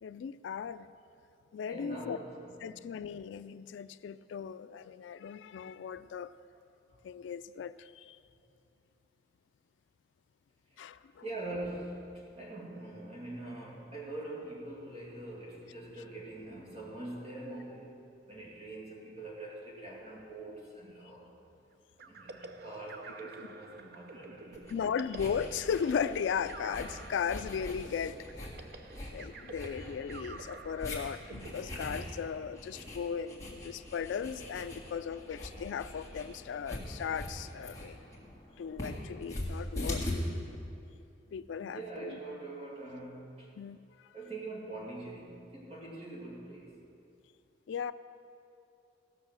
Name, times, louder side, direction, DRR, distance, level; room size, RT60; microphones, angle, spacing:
voice 1, 0.0-0.9 1.5-2.2 2.6-6.3 7.0-8.2 10.8-11.3 24.7-28.3 29.1-38.0 38.6-40.1 41.3-42.2 43.6-43.8 47.7-47.9, left 7 dB, 75° left, 14 dB, 0.3 m, -37 dB
voice 2, 1.7-2.6 6.9-7.0 10.7-10.8 11.2-17.9 18.3-21.3 22.0-24.7 41.6-43.5 44.1-46.7, right 2 dB, 35° right, -3 dB, 2.3 m, -43 dB
sound 1, 22.0-32.6, right 3 dB, 55° right, 0.6 m, -50 dB
sound 2, 24.5-40.1, left 1 dB, 20° left, 1.8 m, -43 dB
16.0 x 6.2 x 6.3 m, 2.6 s
head